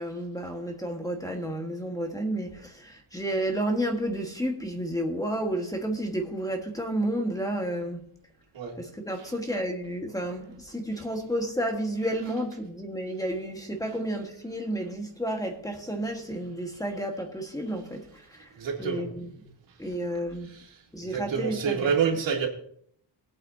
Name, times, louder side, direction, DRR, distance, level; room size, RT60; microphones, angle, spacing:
voice 1, 0.0-8.1 8.8-18.0 18.3-18.5 18.8-19.5 19.8-20.5 20.9-21.9, right 1 dB, 10° left, 1.4 m, -31 dB
voice 2, 18.6-19.1 20.5-20.7 21.0-22.5, right 6 dB, 85° right, 3.0 m, -28 dB
22.0 x 8.5 x 2.7 m
wide cardioid pair, 160°, 43 cm